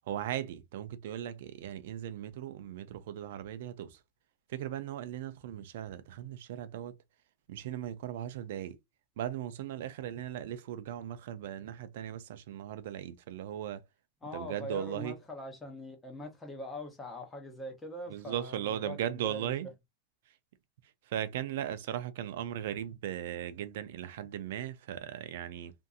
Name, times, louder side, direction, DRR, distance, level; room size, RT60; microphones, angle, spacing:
voice 1, 0.1-4.0 4.5-7.0 7.5-8.8 9.2-13.8 14.3-15.1 18.1-19.7 21.1-25.7, right 11 dB, 65° right, 0.4 m, -38 dB
voice 2, 14.2-19.5, left 1 dB, 10° left, 0.8 m, -42 dB
2.6 x 2.6 x 2.3 m
supercardioid pair, 165°, 0 cm